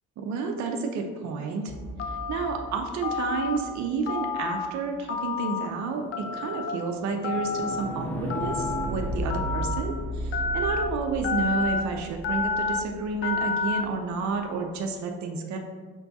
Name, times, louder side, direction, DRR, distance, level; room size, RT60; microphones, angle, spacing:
voice 1, 0.2-1.7 2.1-15.6, right 4 dB, 65° right, 3 dB, 0.6 m, -31 dB
sound 1, 1.7-3.8 5.7-13.7, right 1 dB, 5° left, 0.6 m, -35 dB
Telephone, 2.0-2.5 3.0-3.6 4.1-4.7 5.1-5.7 6.1-6.7 7.2-7.8 8.3-8.8 9.3-9.8 10.3-10.8 11.2-11.8 12.2-12.8 13.2-13.8, left 5 dB, 45° left, 0.5 m, -29 dB
5.3 x 2.3 x 4.0 m, 1.5 s
supercardioid pair, 80°, 31 cm